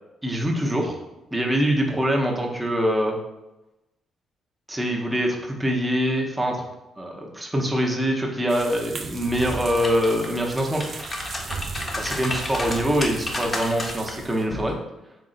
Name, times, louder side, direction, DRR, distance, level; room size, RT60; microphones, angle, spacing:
voice 1, 0.2-1.0 1.3-3.2 4.7-6.6 7.0-10.8 12.0-14.8, equal, 10° right, 0 dB, 0.7 m, -24 dB
sound 1, 8.5-14.5, right 4 dB, 50° right, 0.3 m, -37 dB
sound 2, 9.3-10.3 10.7-14.1 14.5-14.7, left 1 dB, 25° left, 0.6 m, -31 dB
3.7 x 2.1 x 3.7 m, 0.98 s
cardioid pair, 90°, 0 cm